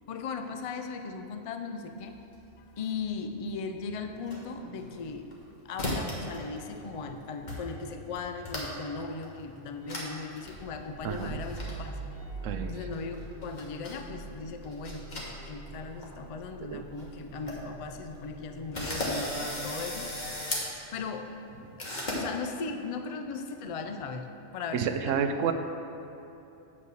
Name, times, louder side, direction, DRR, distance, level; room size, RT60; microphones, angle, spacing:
voice 1, 0.1-2.2 2.8-5.3 5.6-11.9 12.7-20.3 20.9-21.3 21.8-25.5, left 4 dB, 60° left, 6 dB, 0.3 m, -38 dB
Motor vehicle (road) / Engine starting / Idling, 2.0-5.1 5.4-20.4, right 2 dB, 85° left, 2.5 m, -46 dB
sound 1, 4.8-5.4 5.8-6.3 6.6-7.1 7.5-7.6 7.9-8.9 9.2-9.3 9.9-10.1 10.4-10.5 11.1-11.7 12.9-14.0 14.6-15.7 15.9-16.1 16.6-16.7 17.0-17.1 17.3-17.5 18.1-18.2 18.7-20.7 21.8-22.2, left 1 dB, 40° left, 1.4 m, -35 dB
voice 2, 11.0-11.4 12.4-12.7 16.7-16.8 21.7-21.8 24.7-25.5, right 7 dB, 85° right, 8 dB, 1.0 m, -29 dB
8.2 x 5.4 x 6.3 m, 2.9 s
omnidirectional pair, 1.3 m